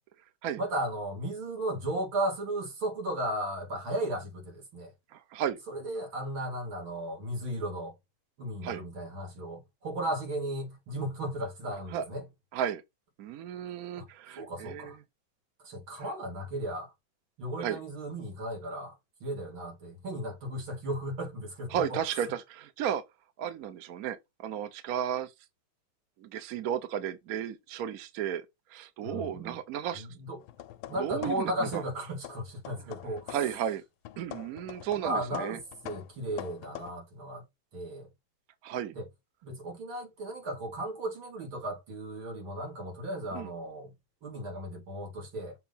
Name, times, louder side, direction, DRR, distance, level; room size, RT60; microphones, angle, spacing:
voice 1, 0.6-4.9 5.7-8.0 8.4-12.3 14.0-14.1 14.3-15.0 15.6-16.9 17.4-22.0 29.0-29.6 29.9-30.4 30.9-33.4 35.0-35.6 35.8-37.4 37.7-38.1 38.9-39.1 39.4-43.9 44.2-45.5, right 1 dB, 90° right, 3.4 m, -35 dB
voice 2, 5.1-5.6 8.6-8.8 11.9-12.0 12.5-12.8 13.2-14.9 17.6-17.8 21.7-23.0 23.4-25.3 26.2-30.1 31.0-31.8 33.3-33.8 34.2-35.6 38.6-38.9 43.3-43.5, right 9 dB, 60° right, 1.0 m, -34 dB
sound 1, 30.4-32.0 32.2-33.6 34.0-36.9, left 13 dB, 80° left, 1.4 m, -44 dB
6.9 x 2.7 x 5.5 m
omnidirectional pair, 2.2 m